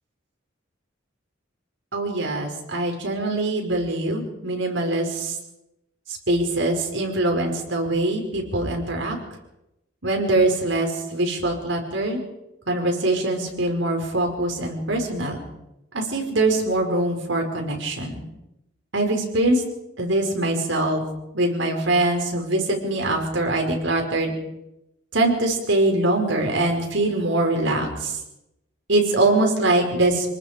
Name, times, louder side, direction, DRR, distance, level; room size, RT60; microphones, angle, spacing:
voice 1, 1.9-5.3 6.3-9.2 10.0-12.2 12.7-15.4 15.9-18.1 18.9-19.6 20.0-21.0 21.3-24.3 25.1-28.1 28.9-30.3, right 2 dB, 75° right, 2 dB, 5.3 m, -23 dB
27.5 x 19.5 x 5.2 m, 0.90 s
head